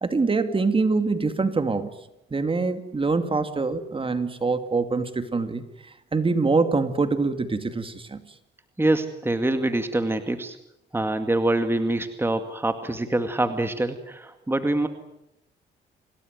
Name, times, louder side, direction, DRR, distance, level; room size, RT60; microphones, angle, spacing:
voice 1, 0.0-1.9 2.3-8.2, right 4 dB, 25° right, 9 dB, 2.4 m, -24 dB
voice 2, 8.8-10.6 10.9-14.9, right 2 dB, 10° right, 8 dB, 2.1 m, -25 dB
27.0 x 18.5 x 9.5 m, 0.86 s
cardioid pair, 90°, 20 cm